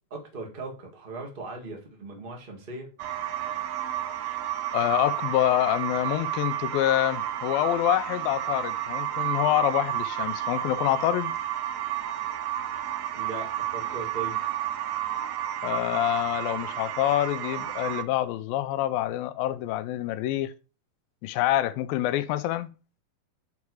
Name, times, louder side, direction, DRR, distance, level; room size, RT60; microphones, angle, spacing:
voice 1, 0.1-2.9 13.1-14.4, right 3 dB, 30° right, 0.9 m, -38 dB
sound 1, 3.0-18.0, right 11 dB, 85° right, 2.6 m, -31 dB
voice 2, 4.7-11.3 15.6-20.5 21.2-22.7, left 14 dB, 85° left, 2.3 m, -26 dB
9.7 x 4.7 x 4.7 m
omnidirectional pair, 4.2 m